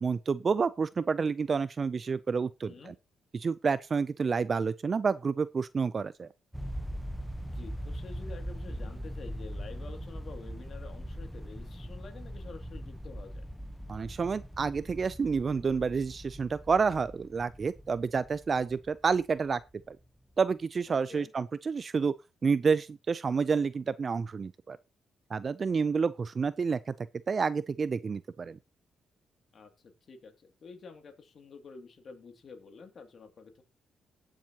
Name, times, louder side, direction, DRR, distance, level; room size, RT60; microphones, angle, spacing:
voice 1, 0.0-2.9 3.3-6.3 13.9-19.6 19.9-20.0 20.4-22.1 22.4-24.8 25.3-28.6, right 5 dB, 40° right, 0.4 m, -29 dB
sound 1, 6.5-19.8, equal, ahead, 0.9 m, -41 dB
voice 2, 7.4-13.4 20.9-21.3 29.5-33.6, left 4 dB, 50° left, 2.5 m, -49 dB
18.0 x 7.4 x 2.9 m
cardioid pair, 90°, 0 cm